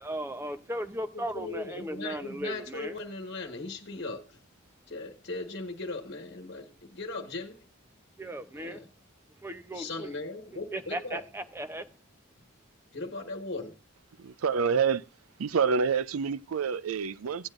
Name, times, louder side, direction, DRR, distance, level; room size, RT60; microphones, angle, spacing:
voice 1, 0.0-3.0 8.2-8.8 9.4-10.2 10.5-11.9, right 1 dB, 10° right, 0.7 m, -37 dB
voice 2, 1.1-4.4 4.9-7.6 8.5-8.9 9.7-11.2 12.9-13.8, left 3 dB, 50° left, 1.3 m, -38 dB
voice 3, 14.2-15.0 15.4-17.5, right 6 dB, 80° right, 0.5 m, -27 dB
16.5 x 8.9 x 2.5 m
head